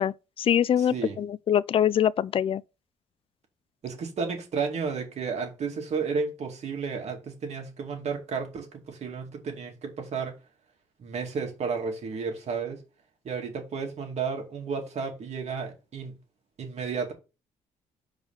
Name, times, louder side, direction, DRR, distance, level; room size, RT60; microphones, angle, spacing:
voice 1, 0.0-2.6, left 9 dB, 45° left, 0.4 m, -24 dB
voice 2, 0.8-1.2 3.8-10.4 11.0-12.8 13.2-16.2 16.6-17.1, right 5 dB, 55° right, 2.3 m, -32 dB
5.0 x 4.1 x 5.7 m
cardioid pair, 80°, 13 cm